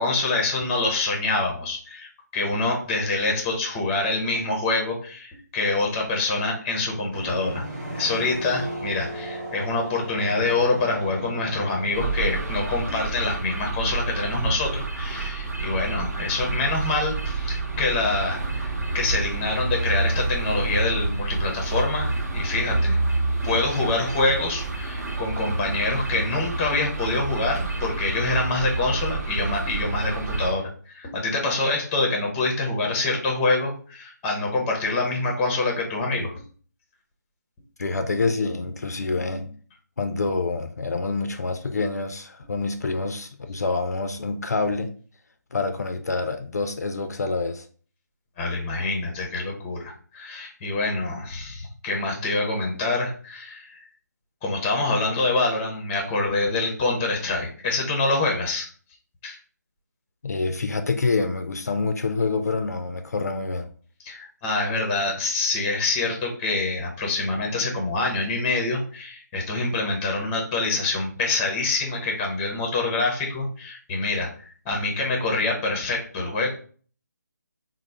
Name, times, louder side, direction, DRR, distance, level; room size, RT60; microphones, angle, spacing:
voice 1, 0.0-7.6 7.9-18.7 18.9-23.0 23.4-36.3 48.4-53.9 54.4-58.7 59.2-59.4 64.0-76.5, left 3 dB, 15° left, 0.6 m, -26 dB
sound 1, 7.1-12.6, right 1 dB, 10° right, 0.8 m, -35 dB
sound 2, 11.9-30.5, right 3 dB, 60° right, 1.0 m, -28 dB
voice 2, 37.8-39.5 40.0-44.9 45.5-47.7 60.2-63.7, left 3 dB, 60° left, 0.4 m, -27 dB
4.0 x 2.0 x 3.2 m
figure-of-eight pair, 150°, 10 cm